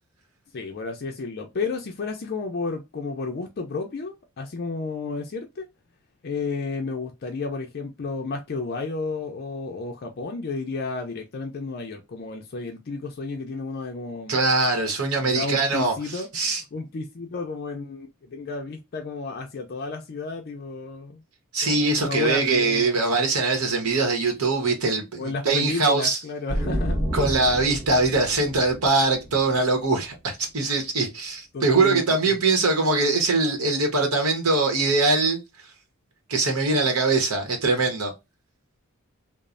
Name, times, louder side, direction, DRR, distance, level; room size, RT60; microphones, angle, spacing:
voice 1, 0.5-5.7 6.2-14.4 15.2-21.2 21.6-22.9 23.7-23.8 25.2-27.0 31.5-32.3, left 4 dB, 45° left, 0.4 m, -32 dB
voice 2, 14.3-15.9 16.3-16.6 21.5-26.2 27.1-35.4 36.3-38.1, right 3 dB, 75° right, 0.9 m, -22 dB
sound 1, 26.5-30.1, equal, 25° right, 1.8 m, -30 dB
3.0 x 2.0 x 2.4 m
head